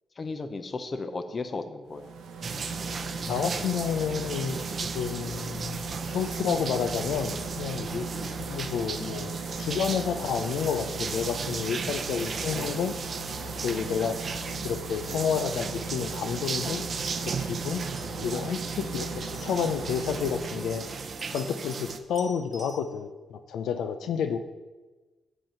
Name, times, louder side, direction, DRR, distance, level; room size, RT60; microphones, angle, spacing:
voice 1, 0.2-2.1 8.1-8.4 10.1-10.4 13.9-14.3 15.1-15.2 18.8-18.9, left 3 dB, 35° left, 9 dB, 0.7 m, -37 dB
sound 1, 1.9-21.3, right 3 dB, 90° right, 0.7 m, -38 dB
sound 2, 2.4-22.0, right 5 dB, 45° right, 0.6 m, -36 dB
voice 2, 3.3-12.9 13.6-14.2 14.6-16.8 17.2-17.8 18.2-20.8 21.3-24.4, left 7 dB, 85° left, 8 dB, 0.4 m, -30 dB
sound 3, 18.0-18.4 18.7-18.8 19.2-19.8 20.4-21.9 22.1-22.8, equal, ahead, 2.2 m, -48 dB
7.4 x 5.4 x 5.7 m, 1.2 s
cardioid pair, 100°, 0 cm